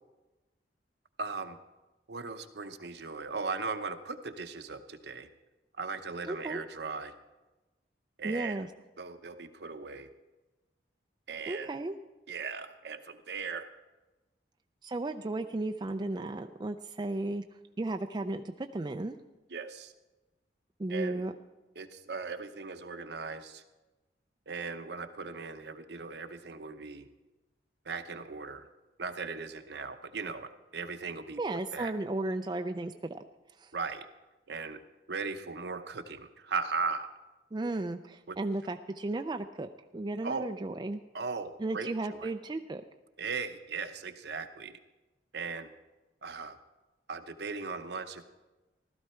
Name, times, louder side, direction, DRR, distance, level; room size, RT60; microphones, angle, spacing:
voice 1, 1.2-1.6 2.1-5.3 5.8-7.1 8.2-8.7 9.0-10.1 11.3-11.7 12.3-13.7 19.5-19.9 20.9-21.2 21.8-23.6 24.5-27.1 27.9-28.7 29.0-31.9 33.7-34.1 34.5-34.8 35.1-37.1 38.3-38.4 40.2-40.5 41.1-42.3 43.2-44.8 45.3-45.7 46.2-46.6 47.1-48.2, right 4 dB, 65° right, 9 dB, 0.8 m, -38 dB
voice 2, 6.2-6.6 8.2-8.7 11.5-12.0 14.8-17.4 17.8-19.2 20.8-21.3 31.4-33.2 33.6-33.7 37.5-41.0 41.6-42.8, right 2 dB, 25° right, 6 dB, 0.4 m, -34 dB
15.5 x 13.0 x 4.4 m, 1.1 s
head